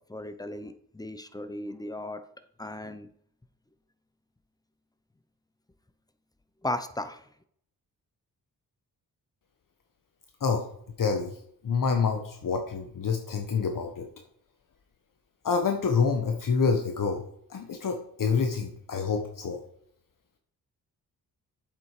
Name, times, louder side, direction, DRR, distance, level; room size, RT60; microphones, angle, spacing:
voice 1, 0.1-2.2 2.6-3.1 6.6-7.2, left 1 dB, 10° left, 11 dB, 0.9 m, -35 dB
voice 2, 11.0-11.3 11.6-14.0 15.4-17.2 17.5-19.6, left 5 dB, 55° left, 4 dB, 1.3 m, -27 dB
7.9 x 7.7 x 5.0 m, 0.65 s
cardioid pair, 85°, 38 cm